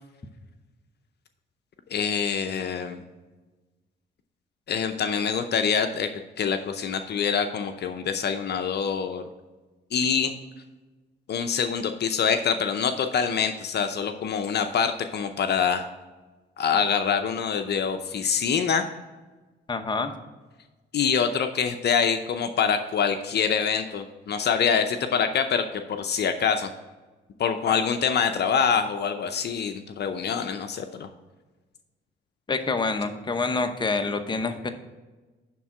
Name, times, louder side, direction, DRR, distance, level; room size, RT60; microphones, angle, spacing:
voice 1, 1.9-3.0 4.7-6.1 6.4-9.2 9.9-10.3 11.3-15.9 16.6-18.8 20.9-25.6 25.9-26.7 27.4-31.1, left 6 dB, 55° left, 7 dB, 0.7 m, -25 dB
voice 2, 19.7-20.1 27.7-27.8 32.5-34.7, left 3 dB, 25° left, 7 dB, 0.9 m, -27 dB
11.0 x 3.7 x 5.9 m, 1.2 s
cardioid pair, 90°, 20 cm